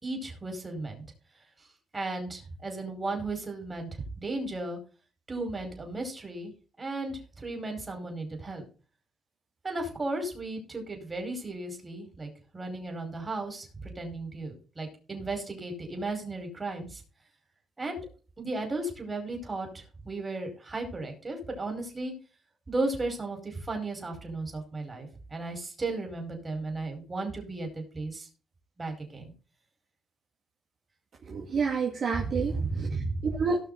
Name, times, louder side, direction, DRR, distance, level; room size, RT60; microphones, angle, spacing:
voice 1, 0.0-1.0 1.9-4.8 5.3-6.5 6.8-8.6 9.6-17.0 17.8-18.1 18.4-22.1 22.7-28.3 28.8-29.3 32.1-32.3 32.5-33.3, right 2 dB, 25° right, 3 dB, 5.0 m, -35 dB
voice 2, 31.3-33.6, right 5 dB, 55° right, -1 dB, 2.4 m, -30 dB
17.5 x 6.4 x 4.0 m, 0.38 s
cardioid pair, 90°, 0 cm